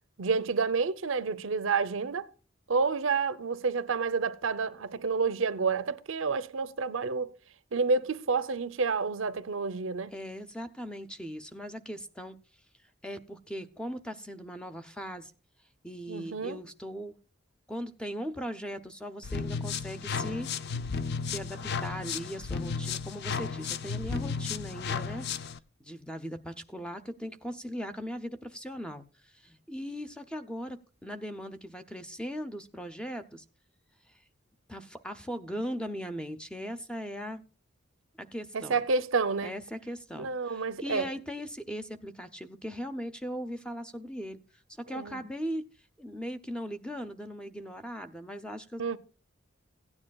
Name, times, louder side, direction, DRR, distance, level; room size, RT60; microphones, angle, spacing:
voice 1, 0.2-2.3 2.7-7.3 7.7-10.1 16.1-16.6 38.5-39.5 40.2-41.1 44.9-45.2 48.8-49.0, right 4 dB, 70° right, 0.7 m, -29 dB
voice 2, 10.1-12.4 13.0-15.3 15.8-17.2 17.7-20.5 21.2-25.3 25.8-30.8 31.0-33.4 34.7-37.4 38.3-38.8 39.4-44.4 44.7-45.7 46.0-49.0, equal, 5° left, 0.6 m, -39 dB
sound 1, 19.2-25.6, left 5 dB, 55° left, 0.5 m, -34 dB
16.5 x 9.8 x 2.3 m
head